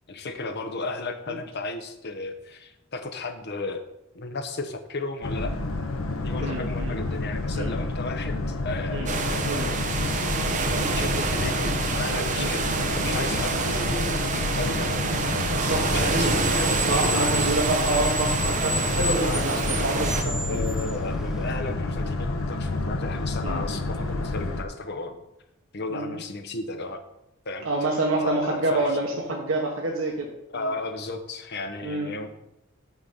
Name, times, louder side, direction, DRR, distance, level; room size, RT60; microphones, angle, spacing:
voice 1, 0.1-3.9 4.1-5.5 6.2-15.0 15.7-17.6 19.1-19.9 20.4-25.3 25.7-27.0 27.4-27.7 28.2-28.9 30.5-32.3, left 3 dB, 55° left, 7 dB, 1.0 m, -34 dB
Boat Water vehicle, 5.2-24.6, left 2 dB, 85° left, 0.9 m, -29 dB
voice 2, 6.4-7.0 7.5-7.7 8.9-9.1 9.4-9.7 12.4-12.5 15.6-16.3 16.8-20.6 23.4-23.6 25.9-26.2 27.6-30.3 30.5-30.7 31.8-32.3, right 2 dB, 70° right, -1 dB, 1.3 m, -27 dB
sound 1, 9.1-20.2, right 4 dB, 40° right, 0.8 m, -27 dB
Screech, 15.7-21.5, right 1 dB, ahead, 0.6 m, -31 dB
6.0 x 5.9 x 6.8 m, 0.86 s
head